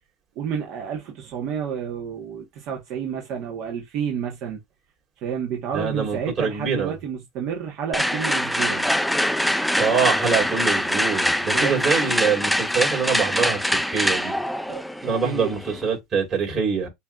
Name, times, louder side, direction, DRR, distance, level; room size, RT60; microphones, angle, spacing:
voice 1, 0.4-4.6 5.2-8.9 11.5-11.9 14.7-15.5, right 8 dB, 50° right, 1.4 m, -30 dB
voice 2, 5.7-6.9 9.8-14.3 15.0-16.9, right 5 dB, 30° right, 3.8 m, -24 dB
sound 1, 7.9-15.9, equal, ahead, 0.4 m, -24 dB
7.0 x 3.0 x 2.4 m
supercardioid pair, 130°, 0 cm